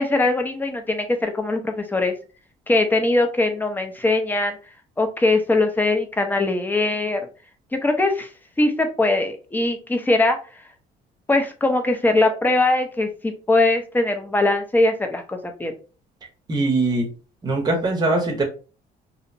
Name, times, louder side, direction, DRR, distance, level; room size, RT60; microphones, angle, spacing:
voice 1, 0.0-2.1 2.7-4.6 5.0-7.2 7.7-8.3 8.6-10.4 11.3-15.7, left 2 dB, 10° left, 5 dB, 0.5 m, -21 dB
voice 2, 16.5-17.1 17.4-18.4, right 2 dB, 25° right, 2 dB, 0.7 m, -21 dB
2.7 x 2.0 x 2.5 m, 0.35 s
cardioid pair, 110°, 17 cm